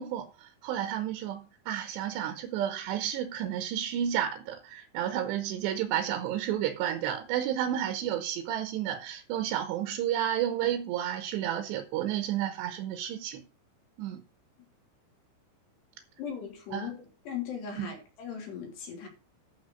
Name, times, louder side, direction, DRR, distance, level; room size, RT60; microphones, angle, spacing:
voice 1, 0.0-13.4 14.0-14.2 16.7-16.9 17.8-17.9, right 10 dB, 75° right, 3.0 m, -31 dB
voice 2, 16.2-19.1, left 7 dB, 60° left, 5.0 m, -38 dB
12.0 x 4.7 x 6.6 m
omnidirectional pair, 5.7 m